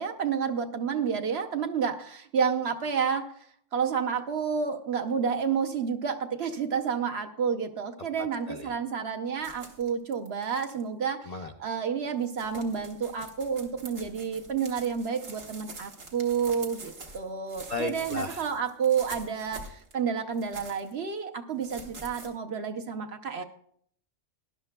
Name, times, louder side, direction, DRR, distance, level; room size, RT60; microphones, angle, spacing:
voice 1, 0.0-3.5 3.7-23.4, right 6 dB, 55° right, 6 dB, 0.9 m, -30 dB
voice 2, 8.2-8.7 11.3-11.5 17.7-18.4, left 2 dB, 45° left, 4 dB, 0.5 m, -35 dB
sound 1, 9.4-10.8 11.7-11.8 12.1-17.2 17.5-19.9 20.3-20.9 21.6-22.3, right 3 dB, 75° right, 1.9 m, -46 dB
18.5 x 11.0 x 2.2 m, 0.63 s
omnidirectional pair, 1.4 m